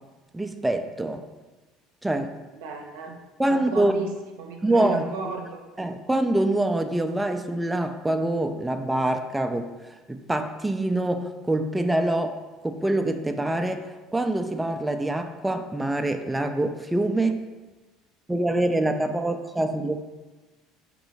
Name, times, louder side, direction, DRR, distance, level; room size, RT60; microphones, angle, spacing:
voice 1, 0.3-1.2 2.0-2.3 3.4-3.9 4.6-5.0 5.8-9.7 10.1-12.4 12.6-17.4 18.3-20.2, right 1 dB, 10° right, 6 dB, 0.3 m, -25 dB
voice 2, 2.5-3.2 3.5-4.1 4.4-5.7, right 4 dB, 80° right, 3 dB, 0.6 m, -34 dB
3.9 x 3.0 x 3.9 m, 1.2 s
hypercardioid pair, 75°, 0 cm